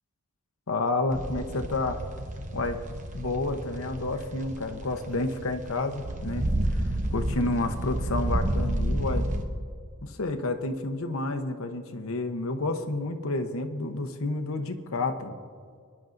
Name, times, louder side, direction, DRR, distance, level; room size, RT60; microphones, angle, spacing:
voice 1, 0.7-2.0 2.5-2.8 3.1-6.5 7.1-9.3 10.0-15.3, left 2 dB, 75° left, 6 dB, 0.9 m, -30 dB
sound 1, 1.1-9.4, right 1 dB, 35° right, 0.9 m, -31 dB
23.0 x 10.5 x 2.6 m, 2.1 s
head